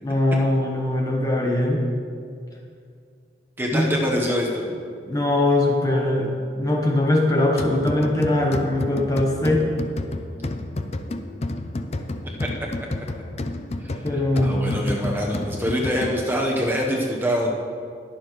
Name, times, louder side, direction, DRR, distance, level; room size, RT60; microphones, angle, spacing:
voice 1, 0.0-1.9 3.7-3.9 5.1-9.7 14.0-14.6, left 1 dB, 20° left, -1 dB, 1.0 m, -21 dB
voice 2, 3.6-4.7 12.2-12.5 13.8-17.5, equal, 10° right, -1 dB, 1.1 m, -25 dB
sound 1, 7.6-16.5, left 2 dB, 35° left, 0.5 m, -31 dB
20.5 x 7.0 x 3.2 m, 2.3 s
head